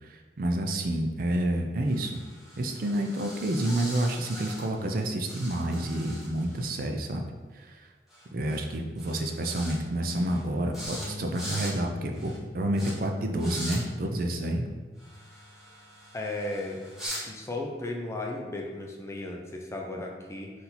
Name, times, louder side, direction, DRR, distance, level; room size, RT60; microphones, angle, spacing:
voice 1, 0.0-2.2 2.6-7.3 7.5-7.9 8.3-14.7, right 1 dB, 50° right, 3 dB, 0.4 m, -29 dB
sound 1, 1.9-5.0 5.3-6.7 8.1-8.2 8.5-8.7 9.0-9.8 10.1-10.4 10.7-11.1 11.3-11.7 12.1-12.4 12.8-12.9 13.4-13.8 15.0-17.2, equal, ahead, 1.2 m, -42 dB
Bass guitar, 10.8-17.1, left 1 dB, 70° left, 0.9 m, -46 dB
voice 2, 16.1-16.8 17.2-20.5, left 2 dB, 15° left, 0 dB, 0.4 m, -35 dB
4.3 x 2.6 x 4.1 m, 1.4 s
head